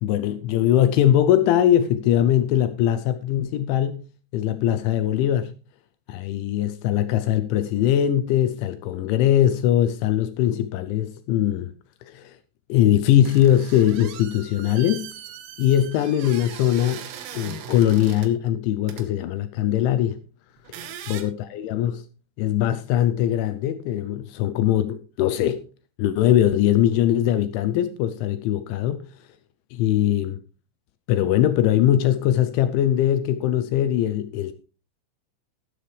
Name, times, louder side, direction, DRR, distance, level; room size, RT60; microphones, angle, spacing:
voice 1, 0.0-4.0 4.3-5.5 6.1-11.7 12.1-12.4 12.7-15.1 15.6-17.0 17.3-20.2 21.1-22.0 22.4-25.6 26.0-29.1 29.7-30.4 31.1-34.5, left 11 dB, 80° left, 2.8 m, -21 dB
sound 1, 13.3-18.3 18.9-19.1 20.6-21.2, right 9 dB, 85° right, 3.9 m, -39 dB
12.5 x 11.5 x 3.3 m
omnidirectional pair, 5.9 m